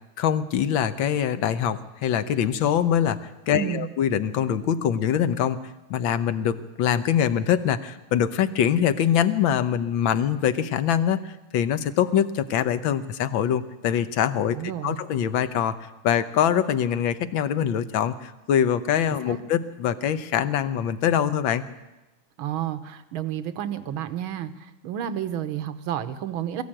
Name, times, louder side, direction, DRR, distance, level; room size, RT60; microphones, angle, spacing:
voice 1, 0.2-5.6 5.9-11.2 11.5-14.6 14.8-15.8 16.0-21.6, left 9 dB, 75° left, 12 dB, 1.7 m, -23 dB
voice 2, 3.5-3.9 14.5-15.0 19.3-19.4 22.4-26.6, right 10 dB, 80° right, 11 dB, 1.8 m, -31 dB
21.5 x 14.5 x 8.9 m, 1.1 s
omnidirectional pair, 2.2 m